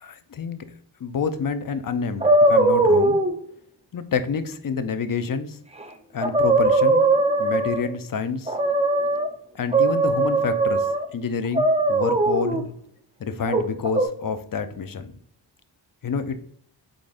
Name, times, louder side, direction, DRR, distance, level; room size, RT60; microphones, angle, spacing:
voice 1, 0.0-0.6 1.0-3.2 3.9-5.6 6.1-7.0 7.4-8.5 9.5-12.7 13.2-15.1 16.0-16.4, left 5 dB, 45° left, 10 dB, 0.6 m, -28 dB
sound 1, 2.2-3.3 5.8-5.9 6.2-7.9 8.5-9.3 9.7-11.0 11.5-12.6 13.5-14.1, right 2 dB, 15° right, 0.7 m, -20 dB
4.9 x 3.8 x 2.5 m, 0.64 s
cardioid pair, 60°, 46 cm